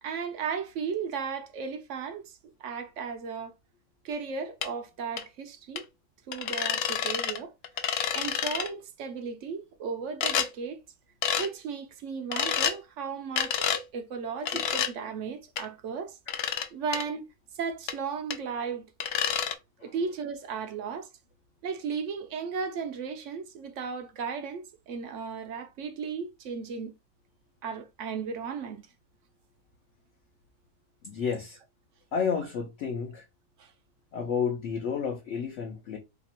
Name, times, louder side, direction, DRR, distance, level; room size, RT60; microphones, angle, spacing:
voice 1, 0.0-3.5 4.0-5.8 6.3-7.5 8.1-10.8 11.3-16.2 16.7-17.3 17.5-18.9 19.8-21.1 21.6-26.9 27.6-28.9 33.6-33.7, right 5 dB, 65° right, 0.8 m, -35 dB
sound 1, 4.6-4.7 5.2-5.3 5.8-5.9 6.3-7.4 7.6-8.7 10.2-10.5 11.2-11.5 12.3-12.8 13.4-13.8 14.5-14.9 15.6-15.7 16.3-16.7 16.9-17.0 17.9-18.0 18.3-18.4 19.0-19.5, left 8 dB, 80° left, 0.5 m, -28 dB
voice 2, 31.0-31.6 32.1-33.2 34.1-36.0, left 6 dB, 60° left, 0.9 m, -31 dB
2.9 x 2.4 x 4.1 m
omnidirectional pair, 1.6 m